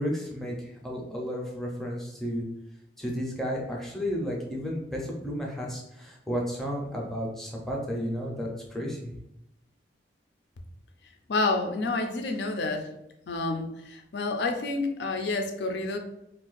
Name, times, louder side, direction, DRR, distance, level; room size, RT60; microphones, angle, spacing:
voice 1, 0.0-2.4 3.0-9.1, equal, ahead, -2 dB, 0.6 m, -32 dB
voice 2, 11.3-12.9 13.3-16.0, left 3 dB, 65° left, 5 dB, 0.5 m, -29 dB
2.5 x 2.3 x 3.9 m, 0.84 s
head